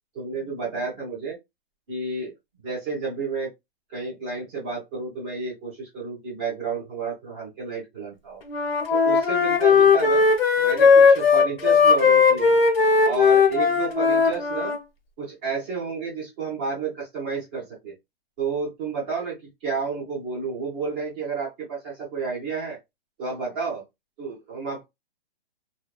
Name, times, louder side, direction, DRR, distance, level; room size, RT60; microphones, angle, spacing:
voice 1, 0.1-1.4 1.9-2.3 2.6-3.5 3.9-8.4 8.9-10.2 10.6-12.6 13.0-14.7 15.2-17.9 18.4-19.3 19.6-22.8 23.2-23.8 24.2-24.8, right 4 dB, 10° right, 0.5 m, -31 dB
Wind instrument woodwind instrument, 8.5-14.8, left 5 dB, 70° left, 0.9 m, -18 dB
2.7 x 2.1 x 2.3 m
hypercardioid pair, 170°, 31 cm